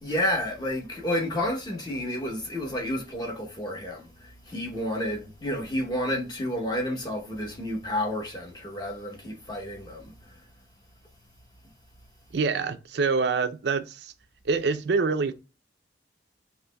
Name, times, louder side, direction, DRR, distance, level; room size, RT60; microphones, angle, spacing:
voice 1, 0.0-10.4, left 1 dB, 20° left, 0.9 m, -30 dB
voice 2, 12.3-14.1 14.4-15.4, right 4 dB, 70° right, 0.5 m, -26 dB
7.3 x 3.0 x 2.2 m
head